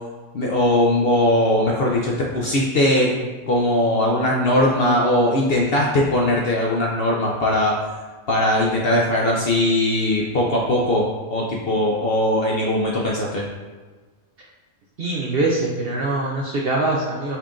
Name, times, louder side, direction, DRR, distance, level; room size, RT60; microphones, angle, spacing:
voice 1, 0.3-7.9 8.3-13.4, left 1 dB, 60° left, -2 dB, 0.6 m, -20 dB
voice 2, 15.0-17.4, right 2 dB, 60° right, -2 dB, 0.6 m, -23 dB
5.6 x 2.4 x 3.6 m, 1.4 s
omnidirectional pair, 1.5 m